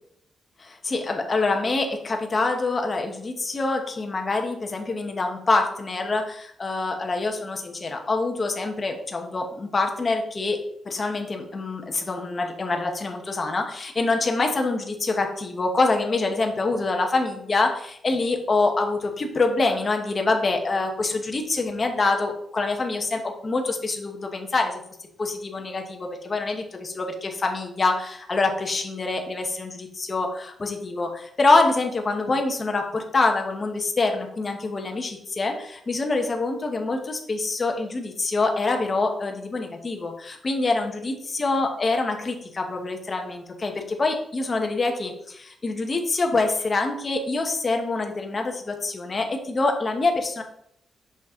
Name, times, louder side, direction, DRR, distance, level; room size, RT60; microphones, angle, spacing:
voice 1, 0.6-24.8 25.2-50.4, left 3 dB, 30° left, 3 dB, 1.0 m, -25 dB
5.9 x 5.4 x 3.7 m, 0.70 s
wide cardioid pair, 140°, 0 cm